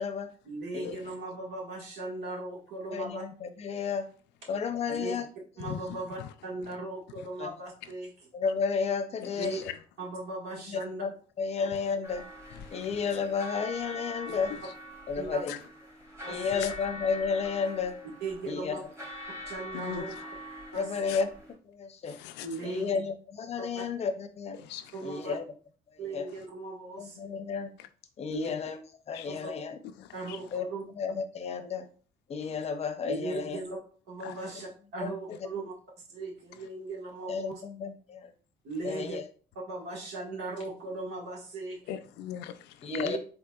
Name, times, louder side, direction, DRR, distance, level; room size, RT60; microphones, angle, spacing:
voice 1, 0.4-3.2 4.9-5.1 5.6-8.1 9.3-9.6 10.0-11.0 15.2-15.4 16.2-16.6 18.2-18.8 19.5-20.1 20.7-21.1 22.4-22.9 24.9-25.3 26.0-27.3 28.3-28.5 29.4-29.5 30.1-30.8 33.1-33.8 34.1-35.7 36.1-37.6 38.6-39.2 39.7-41.8 42.9-43.2, right 3 dB, 80° right, 1.6 m, -38 dB
voice 2, 2.9-4.1 4.5-5.3 7.4-7.5 8.3-9.6 10.7-11.1 11.4-12.2 12.7-14.5 15.1-15.5 16.3-17.9 18.5-18.8 20.7-21.3 21.7-22.2 22.6-24.6 25.0-25.4 26.1-26.3 27.0-27.7 28.2-28.8 29.1-29.8 30.5-30.7 30.9-31.9 32.3-33.6 35.0-35.1 37.3-38.3 38.8-39.2 42.8-43.2, left 5 dB, 40° left, 0.6 m, -32 dB
voice 3, 5.6-6.3 7.2-7.3 9.2-9.8 12.5-13.2 14.3-14.7 15.5-15.6 16.3-16.7 19.7-20.1 21.1-21.2 22.1-22.7 24.6-24.9 29.1-29.4 30.0-30.4 32.4-32.7 34.2-34.4 41.9-42.9, left 10 dB, 85° left, 0.4 m, -41 dB
sound 1, 12.0-21.5, left 1 dB, 15° right, 1.6 m, -44 dB
3.9 x 3.8 x 2.3 m
cardioid pair, 110°, 17 cm